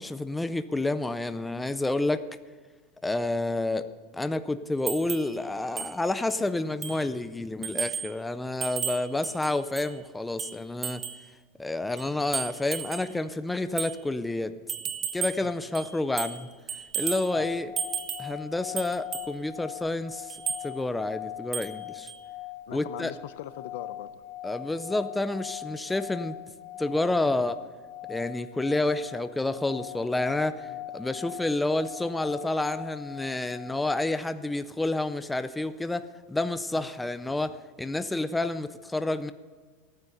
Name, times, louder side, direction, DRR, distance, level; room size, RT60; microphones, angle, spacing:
voice 1, 0.0-2.3 3.0-3.9 4.1-11.0 11.6-14.5 15.1-16.5 17.0-17.7 18.2-20.4 20.6-22.1 22.7-23.1 24.4-26.4 26.8-27.6 28.1-30.7 30.9-39.3, left 2 dB, 5° left, 11 dB, 0.4 m, -29 dB
sound 1, 4.9-5.3 5.8-5.9 6.3-6.4 6.8-7.1 7.6-8.1 8.6-9.9 10.4-11.3 12.0-13.1 13.8-14.0 14.7-15.5 15.7-16.4 16.7-17.3 17.8-18.3 18.8-19.3 20.3-20.7 21.5-21.8 22.1-22.2, right 8 dB, 30° right, 0.9 m, -34 dB
sound 2, 17.0-34.1, left 12 dB, 45° left, 1.4 m, -41 dB
voice 2, 22.7-24.2 30.7-30.8 36.7-36.9, left 12 dB, 70° left, 14 dB, 0.6 m, -41 dB
14.5 x 9.5 x 6.7 m, 1.4 s
supercardioid pair, 160°, 0 cm